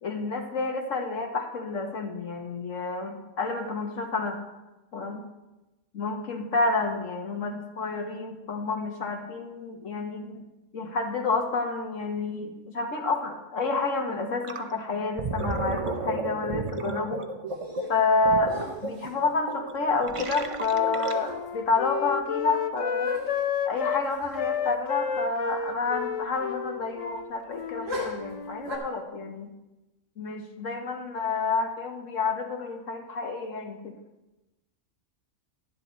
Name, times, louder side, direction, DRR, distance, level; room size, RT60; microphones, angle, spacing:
voice 1, 0.0-4.4 4.9-5.3 5.9-10.5 10.7-17.2 17.9-18.6 18.8-23.1 23.7-29.5 30.2-34.0, left 3 dB, 90° left, 3 dB, 1.8 m, -29 dB
Gurgling, 14.4-14.7 15.0-21.5, right 3 dB, 35° right, 0.6 m, -33 dB
sound 1, 17.5-18.1 18.5-19.3 20.7-20.8 21.0-21.5 21.9-22.0 23.0-23.6 24.2-24.5 24.7-24.8 27.8-28.8, left 2 dB, 80° right, 2.4 m, -38 dB
Wind instrument woodwind instrument, 20.2-24.0 24.3-27.9 28.2-28.7, left 7 dB, 65° left, 0.3 m, -31 dB
12.0 x 10.5 x 4.1 m, 1.0 s
omnidirectional pair, 1.3 m